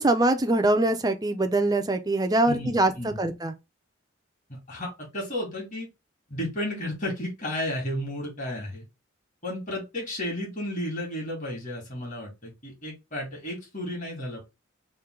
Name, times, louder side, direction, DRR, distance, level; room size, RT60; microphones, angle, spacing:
voice 1, 0.0-3.5, right 2 dB, 20° right, 0.5 m, -23 dB
voice 2, 2.5-3.2 4.5-5.9 6.3-8.8 9.4-14.4, left 1 dB, 40° left, 2.0 m, -33 dB
3.8 x 2.7 x 4.4 m
head